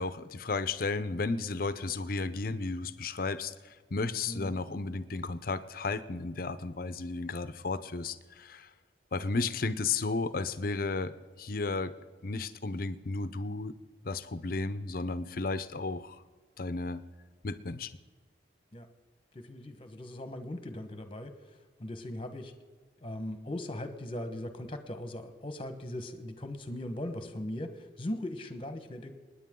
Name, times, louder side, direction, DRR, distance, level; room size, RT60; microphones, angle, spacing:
voice 1, 0.0-8.7 9.1-11.9 12.2-13.7 14.0-16.2 16.6-17.0 17.4-17.9, left 3 dB, 55° left, 13 dB, 0.7 m, -33 dB
voice 2, 4.3-4.6 18.7-18.9 19.3-21.4 21.8-22.5 23.0-29.1, left 1 dB, 30° left, 8 dB, 1.2 m, -39 dB
25.5 x 10.0 x 3.8 m, 1.4 s
head